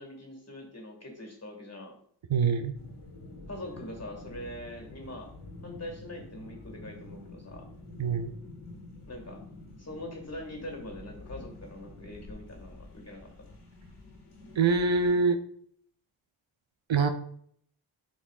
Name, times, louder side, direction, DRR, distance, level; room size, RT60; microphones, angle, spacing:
voice 1, 0.0-2.0 3.5-5.3 5.6-7.7 9.1-9.4 9.8-13.5, left 1 dB, 30° left, 2 dB, 1.9 m, -43 dB
voice 2, 2.3-2.7 8.0-8.3 14.6-15.4 16.9-17.1, right 4 dB, 65° right, 8 dB, 0.7 m, -24 dB
sound 1, 2.7-15.2, left 2 dB, 75° left, 1.8 m, -48 dB
8.3 x 5.2 x 2.4 m, 0.64 s
cardioid pair, 45°, 50 cm